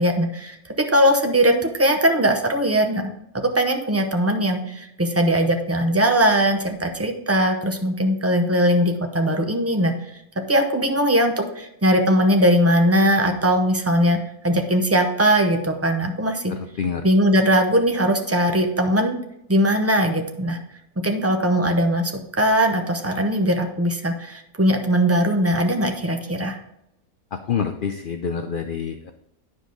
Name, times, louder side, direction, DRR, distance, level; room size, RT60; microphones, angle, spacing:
voice 1, 0.0-3.1 3.4-9.9 10.5-14.2 14.4-16.5 17.0-19.2 19.5-20.6 21.0-26.6, equal, 20° right, 4 dB, 0.4 m, -20 dB
voice 2, 16.5-17.1 27.3-29.1, left 6 dB, 75° left, 7 dB, 0.4 m, -27 dB
9.6 x 5.3 x 3.8 m, 0.84 s
omnidirectional pair, 1.6 m